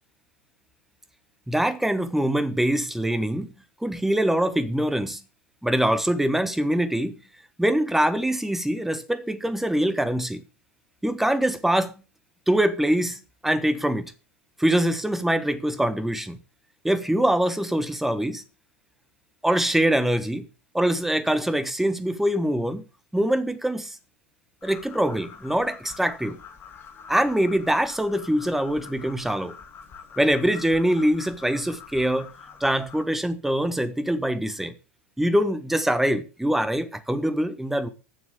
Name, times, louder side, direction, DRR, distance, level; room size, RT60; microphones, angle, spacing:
voice 1, 1.5-3.5 3.8-5.2 5.6-7.2 7.6-10.4 11.0-11.9 12.5-14.1 14.6-16.4 16.8-18.4 19.4-20.5 20.7-22.8 23.1-24.0 24.6-26.4 27.1-29.5 30.2-32.3 32.6-34.7 35.2-37.9, right 1 dB, 5° right, 1.2 m, -24 dB
sound 1, 24.6-33.0, left 6 dB, 30° left, 2.7 m, -46 dB
10.0 x 7.1 x 6.4 m
figure-of-eight pair, 85°, 7 cm